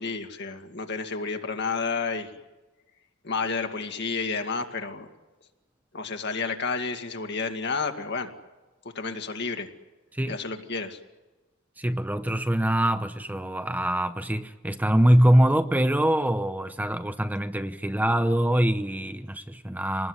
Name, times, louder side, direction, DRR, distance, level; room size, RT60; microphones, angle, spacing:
voice 1, 0.0-2.3 3.2-5.1 5.9-8.3 8.9-9.7 10.3-11.0, left 4 dB, 55° left, 5 dB, 2.2 m, -30 dB
voice 2, 11.8-20.1, right 1 dB, 10° right, 9 dB, 0.8 m, -23 dB
25.5 x 20.0 x 9.7 m, 1.2 s
head